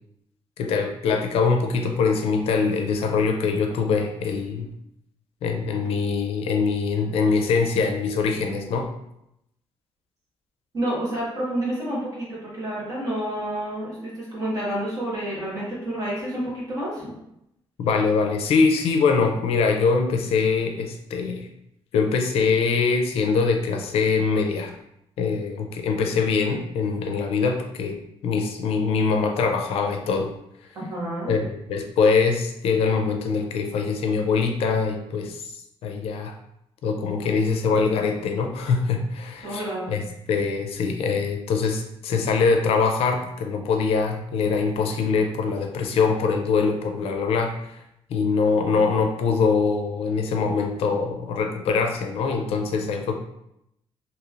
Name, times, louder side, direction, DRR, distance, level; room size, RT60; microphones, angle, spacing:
voice 1, 0.6-4.7 5.4-8.9 17.8-21.5 21.9-24.7 25.2-28.0 28.2-30.3 31.3-35.5 35.8-36.3 36.8-40.0 40.3-47.8 48.1-53.1, left 5 dB, 75° left, 3 dB, 0.4 m, -23 dB
voice 2, 10.7-17.1 30.7-31.3 39.4-39.9, right 1 dB, 35° right, -7 dB, 1.3 m, -29 dB
3.0 x 2.8 x 2.4 m, 0.81 s
cardioid pair, 170°, 10 cm